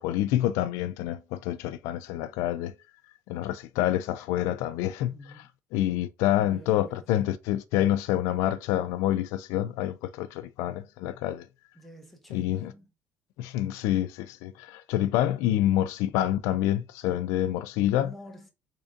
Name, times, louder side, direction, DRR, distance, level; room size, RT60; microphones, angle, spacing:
voice 1, 0.0-2.7 3.3-5.4 5.7-11.5 12.3-12.7 13.4-18.1, left 13 dB, 85° left, 0.3 m, -27 dB
voice 2, 5.1-5.5 6.4-7.1 11.7-12.9 18.0-18.5, equal, ahead, 0.9 m, -48 dB
3.8 x 3.3 x 2.5 m
cardioid pair, 135°, 5 cm